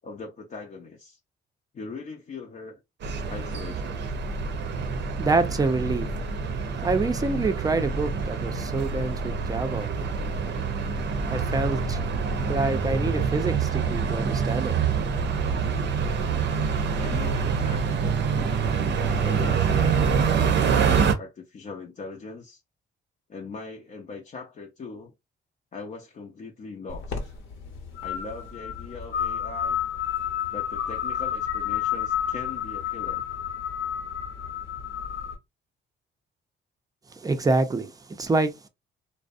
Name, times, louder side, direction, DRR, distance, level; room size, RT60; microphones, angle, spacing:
voice 1, 0.0-1.2 1.7-2.8 3.3-4.0 17.0-18.6 19.2-22.6 23.3-25.1 25.7-27.2 28.0-29.8 30.5-33.2, left 4 dB, 40° left, 0.5 m, -40 dB
sound 1, 3.0-21.1, right 5 dB, 65° right, 0.6 m, -26 dB
voice 2, 5.0-6.2 6.4-6.6 6.8-10.0 11.3-12.0 12.4-15.0 37.1-38.7, right 3 dB, 20° right, 0.5 m, -27 dB
sound 2, 26.9-35.3, left 9 dB, 70° left, 0.9 m, -31 dB
2.5 x 2.0 x 2.5 m
cardioid pair, 90°, 20 cm